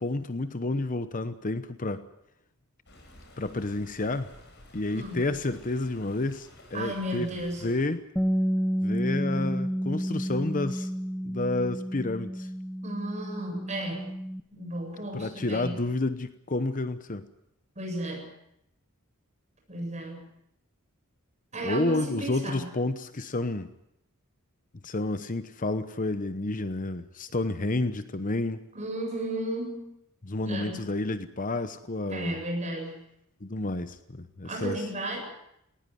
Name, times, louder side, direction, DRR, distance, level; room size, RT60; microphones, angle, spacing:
voice 1, 0.0-2.0 3.4-4.3 4.7-7.3 7.6-8.1 8.8-10.9 11.2-12.5 15.1-17.2 21.6-23.7 24.8-28.6 30.2-32.4 33.4-34.8, left 2 dB, 40° left, 11 dB, 0.9 m, -30 dB
Stream, 2.9-7.9, left 1 dB, 55° left, 6.1 m, -52 dB
voice 2, 4.9-5.2 6.7-7.7 12.8-14.2 14.5-15.7 17.8-18.3 19.7-20.2 21.5-22.6 28.7-29.9 30.4-30.8 32.1-33.0 34.4-35.2, right 1 dB, 35° right, 2 dB, 7.7 m, -34 dB
Bass guitar, 8.2-14.4, equal, ahead, 1.0 m, -30 dB
19.5 x 19.0 x 9.4 m, 0.80 s
head